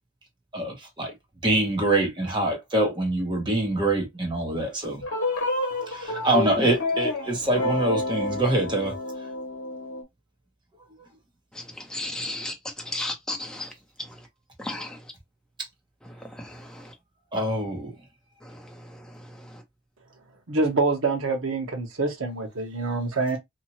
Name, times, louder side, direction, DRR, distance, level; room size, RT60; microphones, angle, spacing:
voice 1, 0.5-1.1 1.4-5.0 5.9-8.9 17.3-17.9, right 1 dB, 20° right, 0.9 m, -25 dB
sound 1, 5.0-10.0, left 2 dB, 55° left, 1.0 m, -29 dB
voice 2, 11.9-12.5 12.9-13.7 14.6-15.0 16.4-16.7, left 2 dB, 5° left, 0.6 m, -33 dB
voice 3, 20.5-23.4, right 3 dB, 70° right, 0.9 m, -26 dB
2.8 x 2.4 x 2.8 m
head